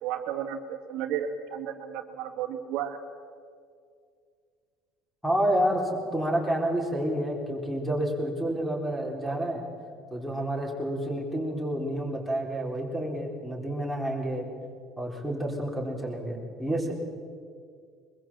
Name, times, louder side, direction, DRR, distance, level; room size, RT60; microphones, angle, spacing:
voice 1, 0.0-3.0, right 9 dB, 70° right, 4 dB, 2.1 m, -33 dB
voice 2, 5.2-9.6 10.1-14.5 15.0-16.9, right 1 dB, ahead, 0 dB, 3.8 m, -29 dB
23.5 x 21.5 x 7.5 m, 2.2 s
cardioid pair, 160°, 0 cm